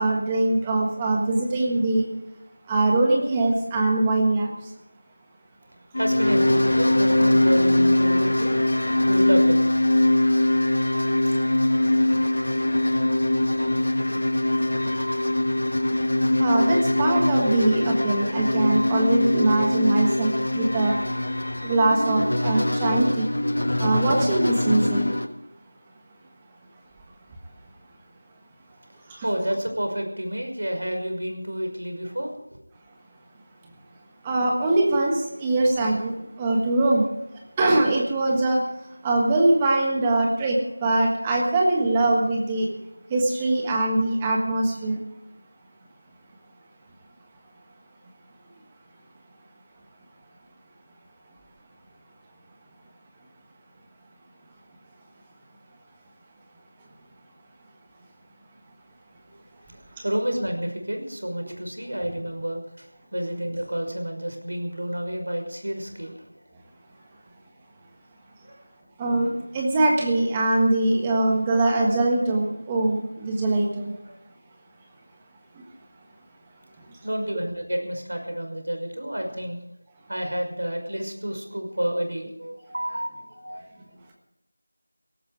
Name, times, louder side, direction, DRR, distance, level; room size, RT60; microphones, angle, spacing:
voice 1, 0.0-2.1 2.7-4.7 16.4-21.0 21.6-23.3 23.8-25.0 29.1-29.2 34.2-37.1 37.6-38.6 39.0-42.7 43.1-45.0 60.0-60.1 69.0-73.9 75.5-75.6, right 2 dB, 10° right, 0 dB, 1.4 m, -22 dB
sound 1, 5.9-25.3, left 1 dB, 65° left, 1.5 m, -22 dB
voice 2, 6.0-8.6 8.8-9.7 29.2-32.6 59.7-66.2 68.5-68.6 74.1-74.2 77.0-79.6 80.1-83.7, equal, 85° right, 4 dB, 5.8 m, -30 dB
17.5 x 13.5 x 5.0 m, 0.89 s
figure-of-eight pair, 175°, 0 cm